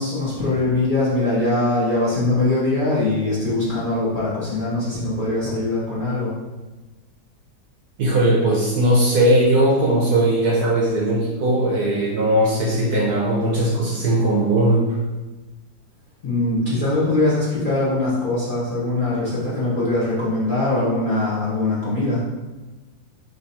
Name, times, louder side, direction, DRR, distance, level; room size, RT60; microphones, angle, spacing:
voice 1, 0.0-6.3 16.2-22.2, left 2 dB, 30° left, -9 dB, 1.1 m, -22 dB
voice 2, 8.0-14.8, right 1 dB, 65° right, -4 dB, 1.0 m, -19 dB
3.3 x 3.0 x 4.2 m, 1.2 s
omnidirectional pair, 2.1 m